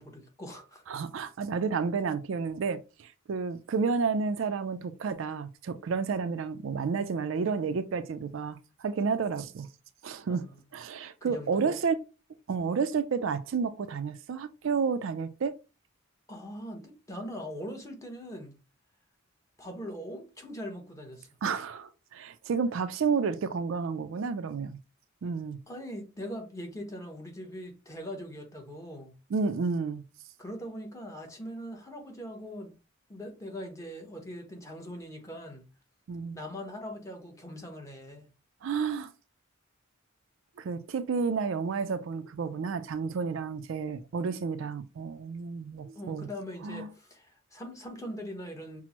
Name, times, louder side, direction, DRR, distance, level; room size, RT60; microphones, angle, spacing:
voice 1, 0.0-0.8 10.3-10.6 10.9-11.8 16.3-18.6 19.6-21.3 25.7-29.2 30.4-32.7 33.1-35.7 36.3-38.3 45.9-48.8, equal, 15° left, 0.8 m, -41 dB
voice 2, 0.9-9.7 10.0-10.4 10.7-12.0 12.5-15.5 21.4-24.8 25.2-25.6 29.3-30.1 36.1-36.4 38.6-39.1 40.6-46.3 46.6-46.9, right 5 dB, 65° right, 0.4 m, -31 dB
5.9 x 2.0 x 2.9 m
head